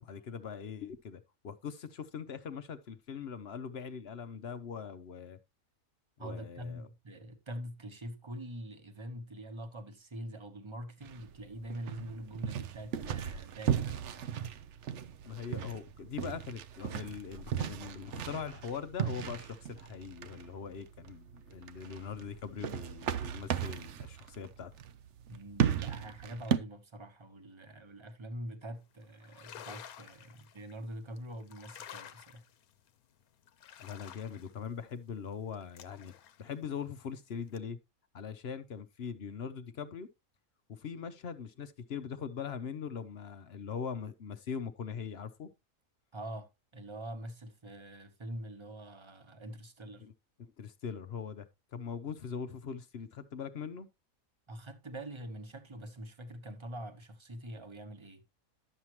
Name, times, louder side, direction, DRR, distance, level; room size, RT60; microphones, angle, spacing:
voice 1, 0.0-5.4 6.2-6.9 15.2-24.7 33.8-36.1 36.4-37.8 38.1-40.1 40.7-45.5 50.0-50.1 50.4-53.9, left 6 dB, 55° left, 0.9 m, -41 dB
voice 2, 6.2-14.2 25.3-32.4 46.1-50.0 54.5-58.2, right 1 dB, 20° right, 1.0 m, -44 dB
pasos en escenario, 11.0-26.6, right 8 dB, 65° right, 0.9 m, -36 dB
sound 1, 29.1-30.7 31.2-32.9 33.4-37.2 37.5-37.6, left 10 dB, 90° left, 1.2 m, -51 dB
11.0 x 7.2 x 3.0 m
omnidirectional pair, 1.5 m